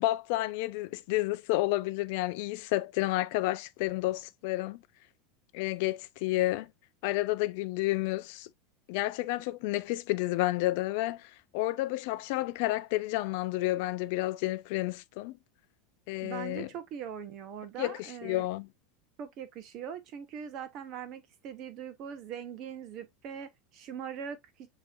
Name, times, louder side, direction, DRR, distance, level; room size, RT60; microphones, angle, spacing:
voice 1, 0.0-4.8 5.5-6.7 7.0-8.5 8.9-15.4 16.1-16.7 17.8-18.7, left 17 dB, 60° left, 0.4 m, -30 dB
voice 2, 16.2-18.4 19.2-24.7, right 8 dB, 40° right, 0.7 m, -41 dB
6.8 x 2.8 x 2.4 m
supercardioid pair, 160°, 0 cm